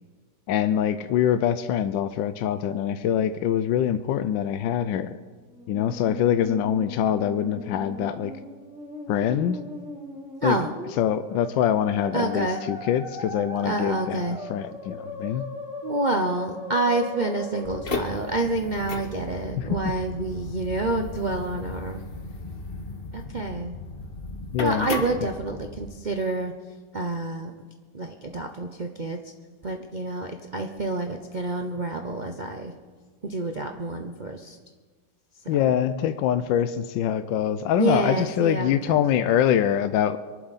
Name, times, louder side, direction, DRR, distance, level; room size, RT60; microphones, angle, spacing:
voice 1, 0.5-5.2 5.7-8.3 9.1-9.6 10.4-10.6 11.0-15.4 19.6-19.7 24.5-24.9 35.5-40.2, left 10 dB, 80° left, 11 dB, 1.3 m, -24 dB
Musical instrument, 5.5-18.5, left 1 dB, 5° right, 1.8 m, -38 dB
voice 2, 12.1-12.6 13.6-14.4 15.8-22.0 23.1-23.7 24.6-26.5 26.9-27.5 27.9-29.2 29.6-32.7 33.2-34.6 37.8-38.9, right 2 dB, 60° right, 4 dB, 0.5 m, -28 dB
sound 1, 17.6-25.9, left 3 dB, 35° left, 1.2 m, -35 dB
24.5 x 11.5 x 4.1 m, 1.5 s
omnidirectional pair, 2.0 m